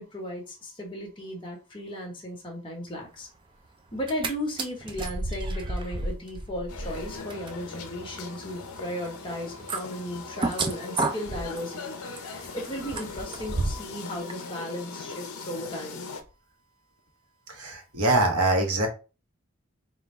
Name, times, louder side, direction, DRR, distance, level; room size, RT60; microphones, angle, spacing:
voice 1, 0.0-3.3 3.9-16.1, equal, 20° left, -1 dB, 1.2 m, -36 dB
sound 1, 3.9-4.3 4.6-13.9 14.3-14.4, right 2 dB, 20° right, 0.3 m, -33 dB
sound 2, 6.7-16.2, left 5 dB, 75° left, 0.7 m, -40 dB
voice 2, 17.5-18.9, right 2 dB, 85° right, 2 dB, 1.3 m, -24 dB
3.7 x 2.4 x 4.2 m, 0.31 s
head